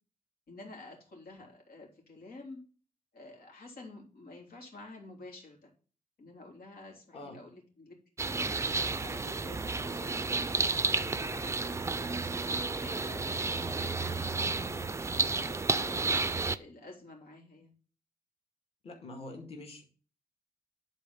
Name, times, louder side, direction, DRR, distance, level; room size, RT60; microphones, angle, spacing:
voice 1, 0.5-2.6 3.1-5.7 6.2-8.0 8.7-12.3 12.7-14.9 15.3-17.7, left 2 dB, 80° left, 0 dB, 3.4 m, -50 dB
sound 1, 8.2-16.6, right 3 dB, 20° right, 0.4 m, -31 dB
voice 2, 18.8-19.8, left 2 dB, 40° left, 2 dB, 2.1 m, -45 dB
10.5 x 4.2 x 5.7 m, 0.39 s
wide cardioid pair, 150°, 15 cm